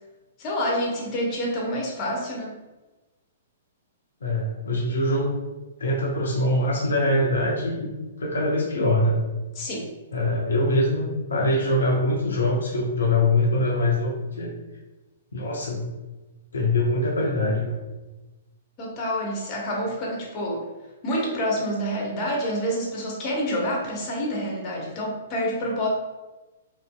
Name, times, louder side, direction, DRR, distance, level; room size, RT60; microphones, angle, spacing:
voice 1, 0.4-2.5 9.6-9.9 18.8-20.7 21.0-25.9, equal, 30° left, -2 dB, 0.8 m, -27 dB
voice 2, 4.2-5.3 5.8-7.9 8.2-9.2 10.1-14.5 15.3-15.9 16.5-17.7, left 1 dB, 65° left, -2 dB, 0.5 m, -23 dB
2.9 x 2.6 x 2.2 m, 1.1 s
figure-of-eight pair, 115°, 0 cm